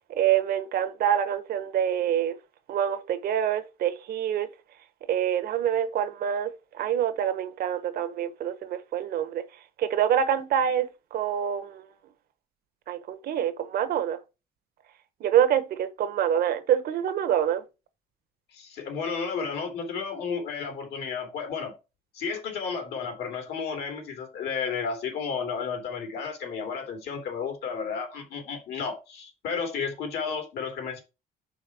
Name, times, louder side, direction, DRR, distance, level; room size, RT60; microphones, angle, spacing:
voice 1, 0.1-2.4 2.7-4.5 5.1-9.4 9.8-11.9 12.9-14.2 15.2-17.6, right 9 dB, 65° right, 1.1 m, -26 dB
voice 2, 18.5-21.7 22.1-31.0, left 5 dB, 75° left, 2.9 m, -32 dB
5.2 x 4.5 x 5.9 m
cardioid pair, 110°, 17 cm